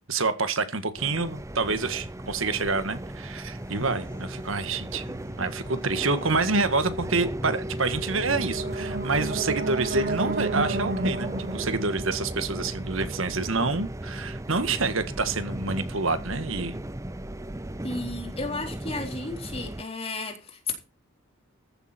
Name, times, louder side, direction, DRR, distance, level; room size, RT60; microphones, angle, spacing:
voice 1, 0.1-16.8, right 3 dB, 65° right, 1.6 m, -27 dB
sound 1, 1.0-19.8, right 1 dB, 15° right, 0.6 m, -36 dB
sound 2, 3.4-7.2, left 1 dB, 5° left, 5.6 m, -53 dB
sound 3, 8.1-13.2, right 2 dB, 45° right, 1.3 m, -32 dB
voice 2, 17.8-20.7, left 3 dB, 30° left, 4.0 m, -33 dB
14.5 x 12.0 x 4.4 m
head